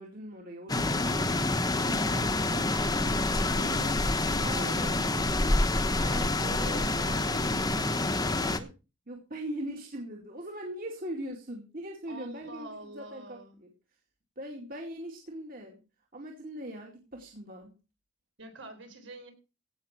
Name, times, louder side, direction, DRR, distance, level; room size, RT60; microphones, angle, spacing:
voice 1, 0.0-2.7 3.6-4.0 4.4-5.4 6.0-8.7 9.1-13.7 14.4-15.8 16.1-17.7, right 1 dB, 45° right, 1 dB, 2.3 m, -41 dB
sound 1, 0.7-8.6, left 2 dB, 20° left, 1.0 m, -27 dB
voice 2, 12.1-13.6 18.4-19.3, right 2 dB, 65° right, 6 dB, 4.1 m, -46 dB
16.5 x 6.2 x 6.0 m, 0.32 s
head